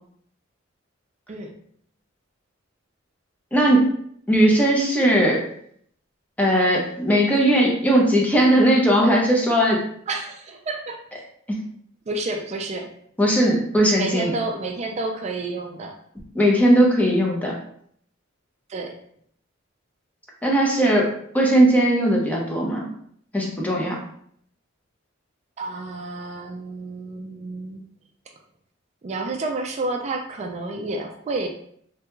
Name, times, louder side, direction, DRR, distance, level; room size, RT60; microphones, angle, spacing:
voice 1, 3.5-3.9 4.3-5.5 6.4-9.8 13.2-14.3 16.3-17.5 20.4-22.9 23.3-24.0, right 1 dB, 10° left, -2 dB, 0.6 m, -18 dB
voice 2, 10.1-11.0 12.1-12.9 13.9-15.9 18.7-19.0 25.6-27.8 29.0-31.5, right 2 dB, 35° right, 3 dB, 0.3 m, -30 dB
3.3 x 2.3 x 3.0 m, 0.65 s
head